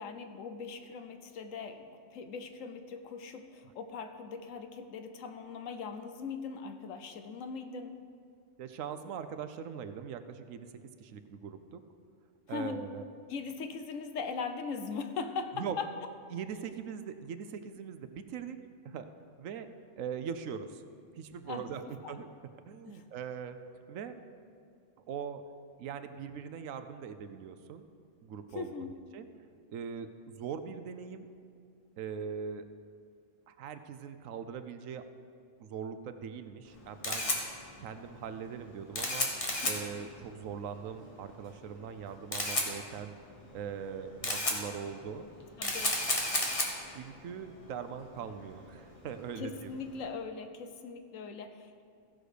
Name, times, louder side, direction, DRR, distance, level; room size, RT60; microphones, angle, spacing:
voice 1, 0.0-7.9 12.5-12.9 13.3-15.9 21.4-21.7 22.0-22.1 22.9-23.0 28.5-28.9 39.5-39.7 45.6-46.0 49.4-51.8, left 5 dB, 80° left, 8 dB, 1.2 m, -40 dB
voice 2, 8.6-10.7 11.0-11.8 12.5-13.0 15.5-15.8 16.3-18.6 18.8-19.7 20.0-20.8 21.2-22.3 22.7-23.6 23.9-24.2 25.1-25.4 25.8-27.9 28.2-29.3 29.7-31.3 32.0-32.7 33.5-35.1 35.6-37.3 37.8-39.3 39.6-43.2 43.5-45.3 46.9-49.7, right 7 dB, 90° right, 10 dB, 1.1 m, -41 dB
Camera, 36.7-50.0, left 1 dB, 30° left, 1.3 m, -35 dB
15.5 x 6.4 x 5.0 m, 2.3 s
omnidirectional pair, 1.3 m